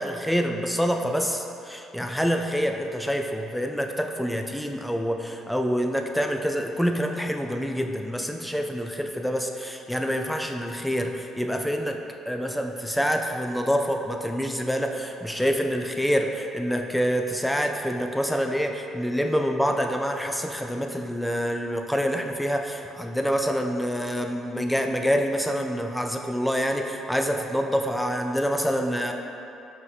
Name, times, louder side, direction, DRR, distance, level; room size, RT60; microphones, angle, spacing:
voice 1, 0.0-12.0 12.3-29.1, equal, ahead, 4 dB, 0.4 m, -26 dB
5.4 x 2.7 x 3.4 m, 2.8 s
supercardioid pair, 80°, 0 cm